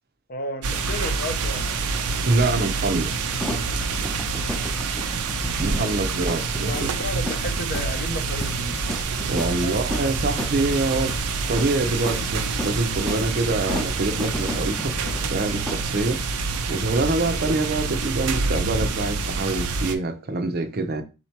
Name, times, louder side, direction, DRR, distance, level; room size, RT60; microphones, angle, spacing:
voice 1, 0.3-1.8 5.5-6.0 6.7-8.8 9.6-9.9, left 1 dB, 40° left, 0.7 m, -33 dB
sound 1, 0.6-20.0, right 4 dB, 90° right, 0.6 m, -27 dB
voice 2, 2.2-3.2 5.6-6.7 9.3-11.2 11.5-14.9 15.3-16.2 16.7-21.0, right 2 dB, 45° right, 0.6 m, -25 dB
sound 2, 3.2-15.9, equal, ahead, 0.6 m, -35 dB
4.1 x 2.9 x 4.4 m
head